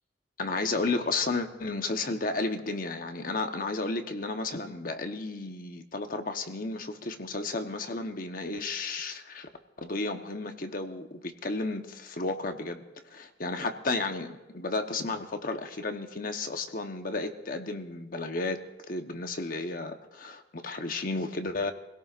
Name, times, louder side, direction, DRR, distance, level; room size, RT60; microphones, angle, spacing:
voice 1, 0.4-9.5 9.8-21.7, left 3 dB, 50° left, 6 dB, 1.0 m, -33 dB
27.5 x 17.0 x 2.5 m, 1.0 s
head